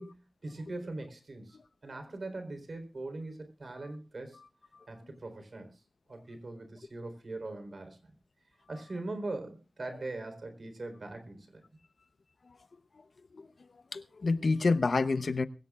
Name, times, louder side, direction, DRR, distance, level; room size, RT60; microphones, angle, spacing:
voice 1, 0.0-1.6 1.8-4.4 4.9-5.8 6.1-8.1 8.7-11.6, right 2 dB, 55° right, 3.8 m, -41 dB
voice 2, 13.9-15.5, left 3 dB, 65° left, 0.8 m, -28 dB
21.5 x 16.5 x 2.4 m
wide cardioid pair, 80°, 0 cm